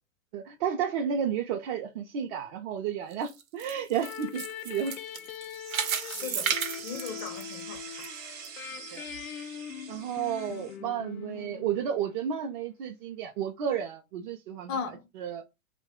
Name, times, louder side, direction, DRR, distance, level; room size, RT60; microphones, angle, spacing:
voice 1, 0.3-4.9 8.9-9.0 9.9-14.8 15.2-15.4, right 8 dB, 40° right, 0.4 m, -32 dB
sound 1, 3.1-8.1 8.4-8.5 9.1-9.2, right 8 dB, 85° right, 0.8 m, -33 dB
sound 2, 4.0-12.5, left 9 dB, 80° left, 0.5 m, -42 dB
sound 3, 5.5-10.8, right 7 dB, 55° right, 0.9 m, -45 dB
voice 2, 6.0-6.5 6.8-8.1 14.7-15.0, left 6 dB, 25° left, 0.4 m, -37 dB
2.9 x 2.2 x 3.5 m
hypercardioid pair, 135°, 40 cm